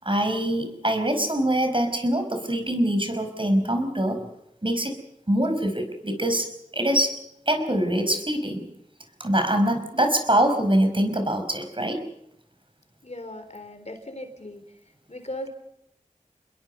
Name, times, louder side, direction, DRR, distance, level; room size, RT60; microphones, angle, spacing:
voice 1, 0.0-4.2 4.6-4.9 5.3-7.2 7.5-8.6 9.2-12.0, right 1 dB, 40° right, 6 dB, 5.2 m, -24 dB
voice 2, 13.0-14.8 15.1-15.5, left 1 dB, 55° left, 7 dB, 4.0 m, -38 dB
28.5 x 21.5 x 5.6 m, 0.81 s
wide cardioid pair, 45°, 14 cm